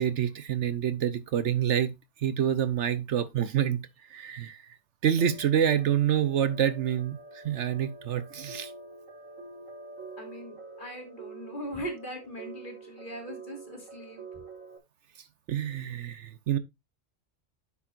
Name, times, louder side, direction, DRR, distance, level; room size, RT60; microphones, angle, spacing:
voice 1, 0.0-1.9 2.2-3.8 4.1-4.8 5.0-8.7 15.5-16.6, right 9 dB, 65° right, 1.0 m, -27 dB
sound 1, 5.2-14.8, right 3 dB, 85° right, 2.3 m, -46 dB
voice 2, 10.2-14.2, equal, 40° left, 3.0 m, -40 dB
10.5 x 7.3 x 2.5 m
omnidirectional pair, 1.3 m